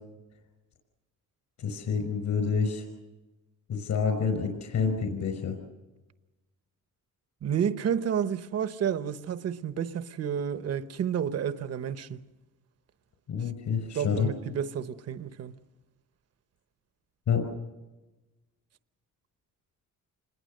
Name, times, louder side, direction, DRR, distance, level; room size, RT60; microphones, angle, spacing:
voice 1, 1.6-2.9 3.7-5.5 13.3-14.3 17.3-17.4, left 5 dB, 65° left, 5.1 m, -28 dB
voice 2, 7.4-12.2 13.9-15.6, right 8 dB, 50° right, 1.0 m, -30 dB
27.5 x 21.0 x 6.6 m
cardioid pair, 135°, 31 cm